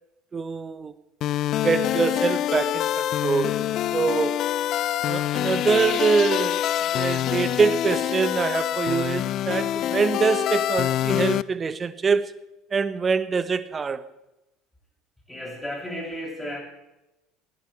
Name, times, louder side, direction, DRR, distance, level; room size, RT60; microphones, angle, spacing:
voice 1, 0.3-0.9 1.6-4.5 5.1-12.3 12.7-14.0, right 5 dB, 25° right, 1.1 m, -24 dB
sound 1, 1.2-11.4, left 12 dB, 45° left, 0.5 m, -25 dB
voice 2, 15.3-16.6, equal, 10° left, 7.5 m, -33 dB
20.0 x 17.0 x 3.4 m
figure-of-eight pair, 65°, 0 cm